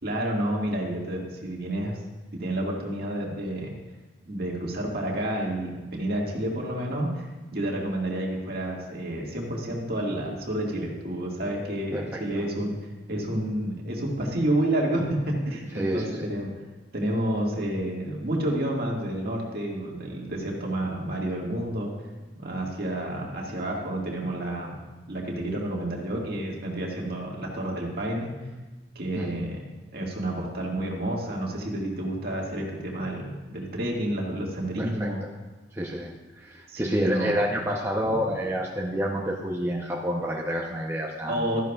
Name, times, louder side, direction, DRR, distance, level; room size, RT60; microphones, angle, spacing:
voice 1, 0.0-2.0 2.3-3.7 4.3-7.3 7.5-12.7 13.1-16.5 16.9-21.9 22.3-24.8 25.1-28.3 29.0-29.6 29.9-35.2 36.7-37.3 41.3-41.6, right 1 dB, 55° right, -2 dB, 1.9 m, -29 dB
voice 2, 15.7-16.2 29.2-29.3 34.8-35.3 35.7-41.5, equal, 15° right, -2 dB, 0.7 m, -29 dB
13.0 x 11.0 x 2.4 m, 1.2 s
head